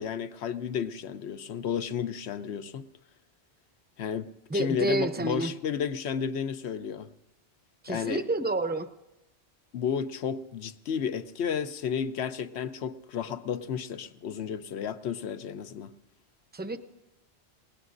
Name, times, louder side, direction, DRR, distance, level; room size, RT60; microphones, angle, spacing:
voice 1, 0.0-2.8 4.0-4.3 4.5-7.1 7.9-8.2 9.7-15.9, left 7 dB, 75° left, 11 dB, 1.0 m, -32 dB
voice 2, 4.5-5.5 7.8-8.9 16.5-16.8, right 2 dB, 10° right, 9 dB, 0.6 m, -29 dB
29.5 x 17.5 x 2.6 m, 0.94 s
omnidirectional pair, 1.1 m